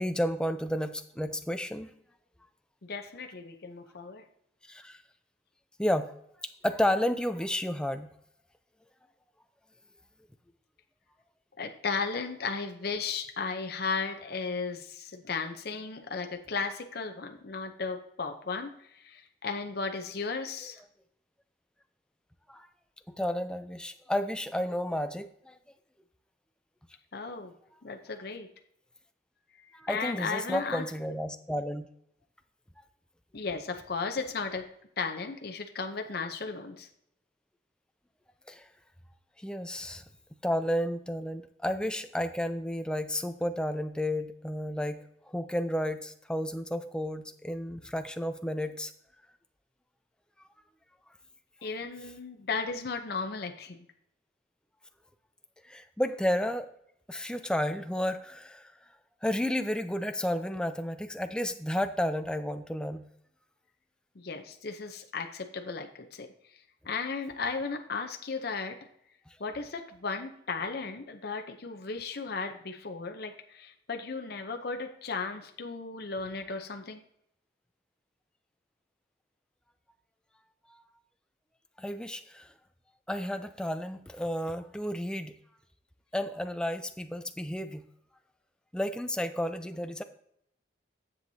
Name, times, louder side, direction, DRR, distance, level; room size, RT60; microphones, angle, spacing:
voice 1, 0.0-1.9 4.7-5.0 5.8-6.1 6.6-8.1 22.5-22.7 23.1-25.6 29.7-31.9 38.5-38.7 39.4-40.0 40.4-48.9 55.6-56.7 57.1-58.7 59.2-63.1 80.7-80.8 81.8-82.5 83.1-85.4 86.1-87.8 88.7-90.0, left 1 dB, 5° left, 8 dB, 0.4 m, -32 dB
voice 2, 2.8-4.2 11.6-20.8 27.1-27.5 27.8-28.5 29.5-30.8 33.3-34.6 35.0-36.9 51.6-53.9 64.2-66.3 66.8-68.8 69.4-77.0, left 4 dB, 50° left, 5 dB, 0.7 m, -35 dB
10.0 x 7.8 x 2.7 m, 0.73 s
head